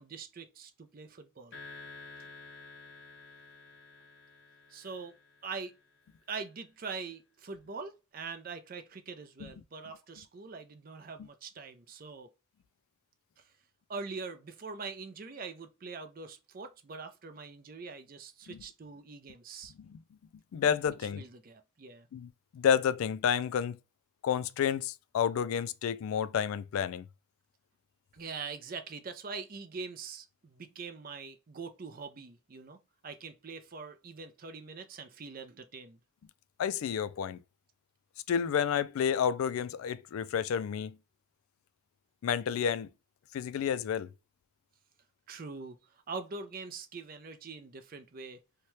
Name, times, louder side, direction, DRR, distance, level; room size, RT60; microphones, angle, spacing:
voice 1, 0.0-1.6 4.7-5.1 5.4-5.7 6.3-12.3 13.4-13.5 13.9-19.7 21.2-22.1 28.1-32.8 33.0-36.0 45.3-48.4, right 4 dB, 45° right, 0.4 m, -43 dB
sound 1, 1.5-6.0, left 3 dB, 55° left, 0.7 m, -51 dB
voice 2, 20.5-21.2 22.1-23.8 24.2-27.0 36.6-37.4 38.3-40.9 42.2-42.9 43.3-44.1, left 8 dB, 85° left, 0.3 m, -30 dB
2.8 x 2.2 x 3.1 m
head